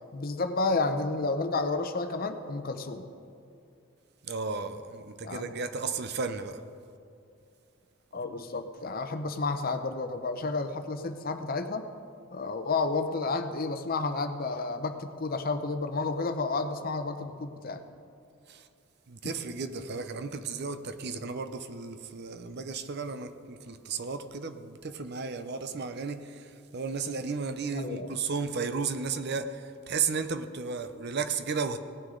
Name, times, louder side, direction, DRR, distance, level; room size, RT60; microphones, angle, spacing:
voice 1, 0.1-3.1 5.2-5.6 8.1-11.9 12.3-17.8 27.7-28.2, left 3 dB, 45° left, 8 dB, 0.7 m, -31 dB
voice 2, 4.2-6.6 18.5-18.7 19.1-31.8, right 5 dB, 50° right, 10 dB, 0.6 m, -34 dB
17.5 x 9.4 x 3.8 m, 2.5 s
head